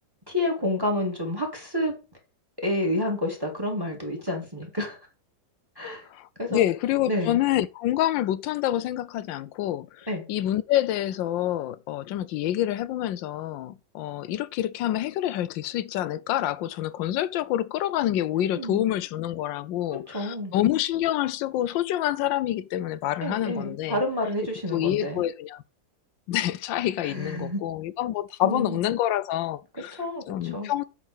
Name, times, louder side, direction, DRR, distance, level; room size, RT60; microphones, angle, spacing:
voice 1, 0.3-2.0 2.6-5.0 5.8-6.1 6.4-6.6 7.1-7.4 10.1-10.3 18.4-18.9 20.1-20.5 23.2-25.2 27.0-27.6 28.4-28.8 29.7-30.7, left 1 dB, 10° right, 2.0 m, -29 dB
voice 2, 6.1-24.0 24.7-25.6 26.3-30.0 30.3-30.8, left 13 dB, 85° left, 1.3 m, -27 dB
8.2 x 3.7 x 6.1 m
omnidirectional pair, 2.0 m